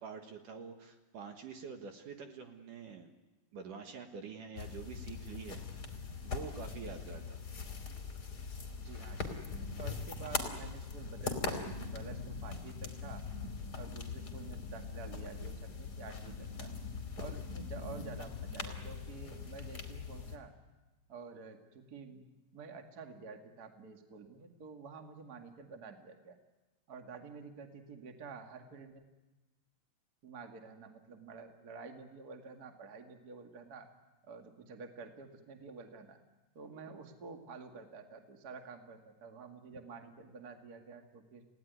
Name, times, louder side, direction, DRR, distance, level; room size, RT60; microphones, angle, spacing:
voice 1, 0.0-3.1 3.5-5.8 6.2-7.4, right 6 dB, 60° right, 5 dB, 2.6 m, -46 dB
sound 1, 4.6-20.4, left 4 dB, 25° left, 2.8 m, -41 dB
voice 2, 8.8-9.4 9.8-13.2 13.7-16.7 17.2-20.5 21.1-22.3 22.5-26.4 26.9-29.1 30.2-33.9 34.2-36.2 36.5-41.5, right 4 dB, 35° right, 4 dB, 1.6 m, -49 dB
29.5 x 17.5 x 9.5 m, 1.1 s
omnidirectional pair, 4.7 m